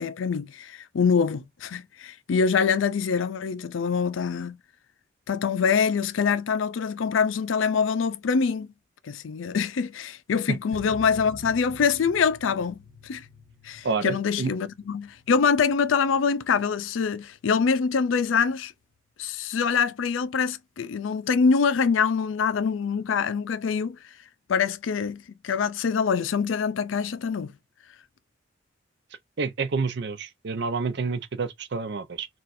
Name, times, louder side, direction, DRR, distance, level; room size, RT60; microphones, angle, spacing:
voice 1, 0.0-4.6 5.3-8.7 9.0-13.3 13.6-18.7 19.2-24.0 24.5-27.5, left 6 dB, 90° left, 0.4 m, -25 dB
sound 1, 10.7-17.8 18.1-18.2 18.5-18.6, left 2 dB, 10° right, 2.0 m, -49 dB
voice 2, 13.8-14.5 29.4-32.3, right 4 dB, 60° right, 0.6 m, -28 dB
4.2 x 2.4 x 2.5 m
head